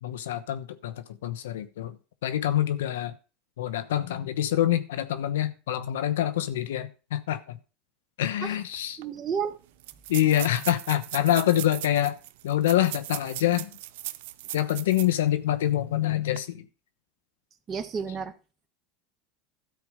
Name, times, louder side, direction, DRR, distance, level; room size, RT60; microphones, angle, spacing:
voice 1, 0.0-2.0 2.2-3.1 3.6-7.6 8.2-9.0 10.1-12.2 12.4-13.7 14.5-16.7, left 12 dB, 90° left, 12 dB, 1.0 m, -26 dB
sound 1, 8.7-8.8 9.0-9.1 9.8-15.2 15.6-15.7 16.2-16.4, right 15 dB, 75° right, 0.6 m, -38 dB
voice 2, 9.0-9.6 17.7-18.3, right 6 dB, 30° right, 5 dB, 1.2 m, -31 dB
13.0 x 4.7 x 6.6 m, 0.33 s
supercardioid pair, 105°, 0 cm